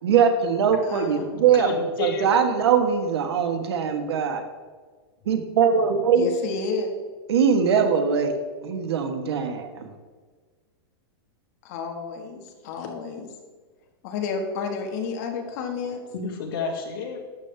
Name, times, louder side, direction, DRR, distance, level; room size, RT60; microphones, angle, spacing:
voice 1, 0.0-4.4 5.2-6.3 7.3-8.3 8.6-9.9, right 7 dB, 80° right, 6 dB, 1.5 m, -21 dB
voice 2, 0.8-1.2 6.1-6.9 11.6-13.3 14.0-16.0, left 5 dB, 40° left, 3 dB, 1.6 m, -31 dB
voice 3, 1.5-2.4 16.1-17.2, left 4 dB, 60° left, 0 dB, 2.3 m, -30 dB
12.5 x 8.4 x 3.4 m, 1.4 s
supercardioid pair, 170°, 13 cm